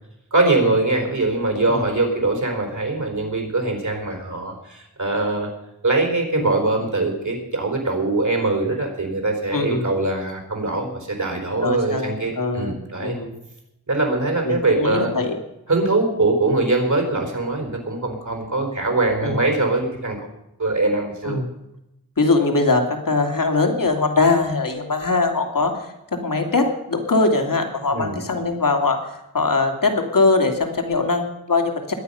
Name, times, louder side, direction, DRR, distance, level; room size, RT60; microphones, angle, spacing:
voice 1, 0.3-5.5 5.8-13.2 13.9-15.1 15.7-20.2 20.6-21.4 27.9-28.2, right 2 dB, 50° right, 3 dB, 4.3 m, -22 dB
voice 2, 9.5-9.9 11.6-13.4 14.4-15.4 19.2-19.4 21.2-21.5 22.2-25.9 26.2-29.0 29.3-31.9, left 3 dB, 55° left, 4 dB, 2.5 m, -21 dB
21.5 x 8.9 x 5.6 m, 0.89 s
wide cardioid pair, 75°, 38 cm